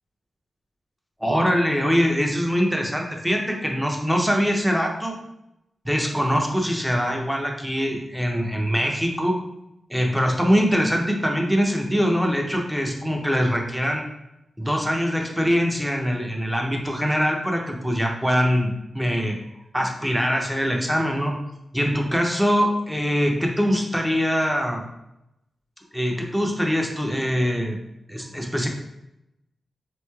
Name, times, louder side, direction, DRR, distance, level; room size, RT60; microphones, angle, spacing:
voice 1, 1.2-5.2 5.8-9.4 9.9-14.1 14.6-19.4 19.7-21.3 21.7-24.8 25.9-27.8 28.1-28.7, equal, 5° right, 1 dB, 0.5 m, -23 dB
3.3 x 3.0 x 2.2 m, 0.86 s
wide cardioid pair, 115°, 0 cm